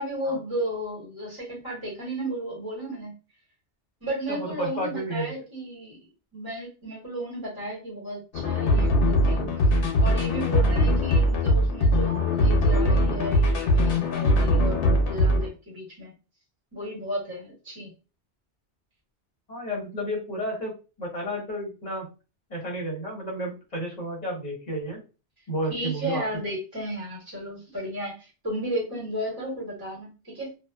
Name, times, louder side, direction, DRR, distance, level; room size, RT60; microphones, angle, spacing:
voice 1, 0.0-3.1 4.0-6.0 6.3-9.4 10.0-16.1 16.7-17.9 25.7-30.5, right 1 dB, 20° right, -5 dB, 1.3 m, -33 dB
voice 2, 4.3-5.3 19.5-20.7 21.0-22.1 22.5-25.0 25.5-26.2, equal, 40° left, -2 dB, 1.1 m, -31 dB
sound 1, 8.3-15.5, left 1 dB, 85° left, 0.9 m, -21 dB
2.4 x 2.4 x 2.3 m, 0.32 s
omnidirectional pair, 1.1 m